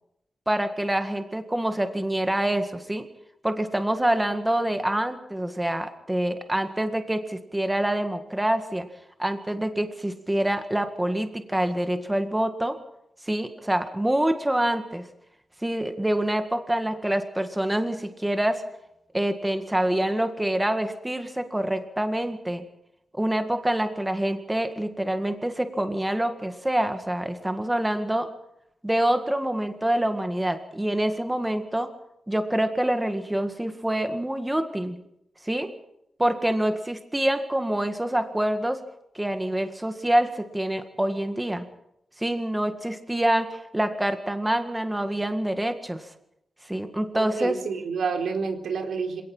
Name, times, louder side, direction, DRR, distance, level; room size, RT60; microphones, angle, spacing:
voice 1, 0.5-3.1 3.4-8.9 9.2-12.8 13.3-15.1 15.6-18.6 19.1-22.6 23.1-28.3 28.8-31.9 32.3-35.0 35.4-35.7 36.2-38.8 39.2-41.7 42.2-46.1 46.7-47.6, right 1 dB, 10° right, 7 dB, 1.9 m, -26 dB
voice 2, 47.1-49.2, right 5 dB, 85° right, 4 dB, 4.2 m, -29 dB
26.5 x 18.0 x 5.6 m, 0.80 s
wide cardioid pair, 140°, 0 cm